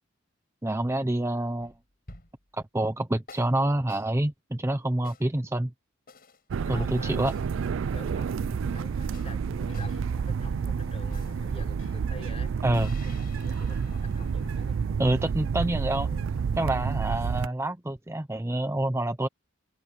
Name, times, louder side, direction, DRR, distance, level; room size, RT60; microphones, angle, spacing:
voice 1, 0.6-1.7 2.7-5.7 6.7-7.3 12.6-12.9 15.0-16.1 16.6-19.3, right 1 dB, 15° right, 0.6 m, -27 dB
sound 1, 1.6-2.5 3.3-3.5 3.9-4.1 5.0-5.3 6.1-6.4 7.3-7.5 9.1-9.3 9.7-10.0 11.1-11.5 12.7-14.8, left 2 dB, 50° left, 6.1 m, -49 dB
sound 2, 6.5-17.5, right 6 dB, 75° right, 0.4 m, -29 dB
voice 2, 6.6-7.3 7.9-12.5 13.0-15.1 15.9-16.3, left 1 dB, 30° left, 5.0 m, -46 dB
sound 3, 9.5-17.2, left 1 dB, 85° left, 7.1 m, -50 dB
head